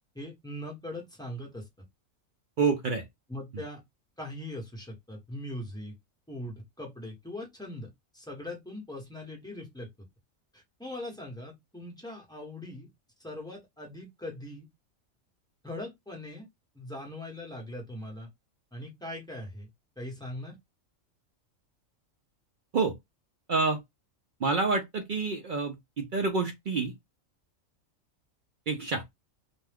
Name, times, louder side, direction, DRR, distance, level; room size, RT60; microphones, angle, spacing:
voice 1, 0.1-1.6 3.3-3.8 4.2-5.9 6.3-9.9 10.5-12.9 13.2-14.7 15.6-16.5 16.7-18.3 18.7-19.7 20.0-20.5, left 1 dB, 5° left, 0.9 m, -40 dB
voice 2, 2.6-3.0 3.5-3.6 22.7-22.9 23.5-23.8 24.4-26.9 28.7-29.0, right 4 dB, 60° right, 0.5 m, -28 dB
2.6 x 2.2 x 3.4 m
omnidirectional pair, 1.4 m